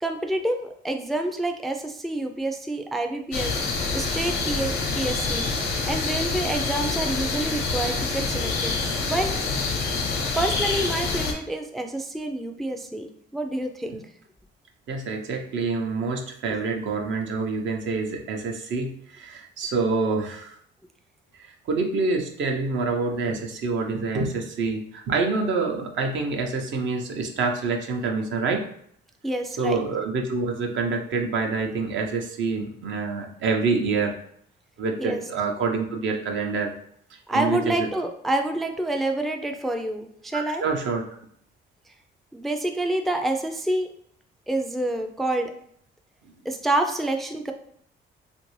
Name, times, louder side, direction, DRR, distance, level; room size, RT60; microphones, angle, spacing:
voice 1, 0.0-3.6 3.9-5.5 5.9-8.8 9.1-9.4 10.4-14.0 29.2-29.8 35.0-35.2 37.3-40.6 42.3-43.9 44.5-45.5 46.5-47.5, right 1 dB, ahead, 4 dB, 0.3 m, -28 dB
sound 1, 3.3-11.3, left 4 dB, 90° left, 0.8 m, -26 dB
voice 2, 14.9-20.5 21.4-28.6 29.6-34.2 34.8-36.7 37.3-37.9 40.3-41.2, right 4 dB, 70° right, 2 dB, 0.7 m, -27 dB
3.2 x 2.5 x 3.1 m, 0.64 s
cardioid pair, 90°, 20 cm